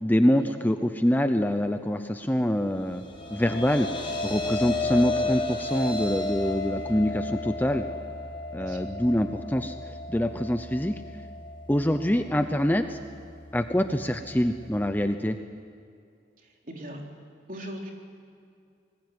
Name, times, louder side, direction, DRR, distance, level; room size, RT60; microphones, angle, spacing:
voice 1, 0.0-3.0 3.3-3.9 4.2-7.8 8.5-11.0 11.7-13.0 13.5-15.4, equal, 10° left, 8 dB, 0.7 m, -25 dB
sound 1, 2.7-15.1, left 2 dB, 25° left, 4.6 m, -34 dB
voice 2, 8.5-8.9 13.9-14.0 16.4-17.0 17.5-17.9, equal, 45° right, 0 dB, 3.8 m, -40 dB
25.5 x 21.0 x 9.5 m, 2.4 s
head